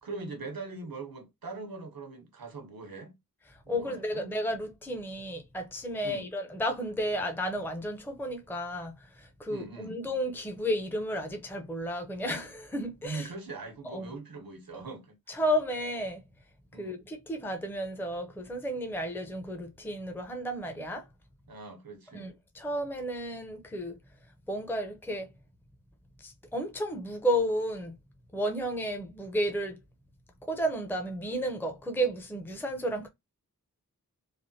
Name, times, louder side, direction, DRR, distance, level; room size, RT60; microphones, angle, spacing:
voice 1, 0.0-3.1 3.6-4.3 6.0-6.3 9.5-10.0 13.0-15.2 16.7-17.0 21.5-22.3, right 3 dB, 90° right, 0.9 m, -41 dB
voice 2, 3.7-13.3 13.8-14.1 14.7-14.9 15.3-16.2 16.7-21.1 22.1-24.0 24.5-25.3 26.2-28.0 28.3-29.8 30.4-33.1, equal, 5° left, 0.6 m, -32 dB
3.3 x 2.2 x 2.6 m
wide cardioid pair, 55°, 34 cm